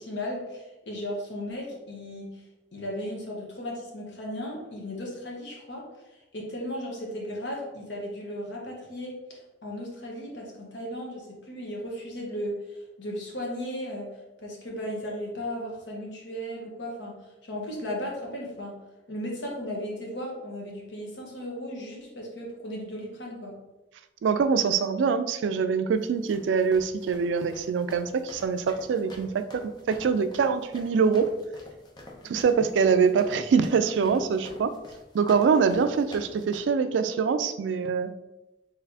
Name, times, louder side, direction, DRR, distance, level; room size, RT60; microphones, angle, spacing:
voice 1, 0.0-2.4 2.7-5.8 6.3-14.1 14.4-17.2 17.4-18.8 19.1-23.6 32.2-32.4, equal, 75° left, -1 dB, 1.1 m, -36 dB
voice 2, 24.2-31.3 32.2-34.7 35.1-38.1, right 6 dB, 80° right, 10 dB, 0.3 m, -24 dB
sound 1, 26.0-36.6, left 2 dB, 25° left, 0.6 m, -47 dB
4.0 x 3.3 x 2.7 m, 1.0 s
head